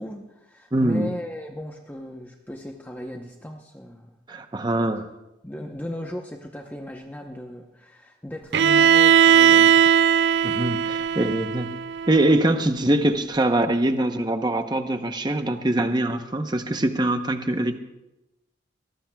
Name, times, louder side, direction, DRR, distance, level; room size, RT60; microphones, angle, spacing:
voice 1, 0.0-4.1 5.4-10.1, left 1 dB, 10° left, 1 dB, 0.8 m, -36 dB
voice 2, 0.7-1.1 4.3-5.1 10.4-11.7 12.1-17.8, right 1 dB, 25° right, 7 dB, 0.8 m, -23 dB
Bowed string instrument, 8.5-12.4, right 8 dB, 65° right, 0.4 m, -18 dB
22.0 x 18.5 x 2.3 m, 0.97 s
head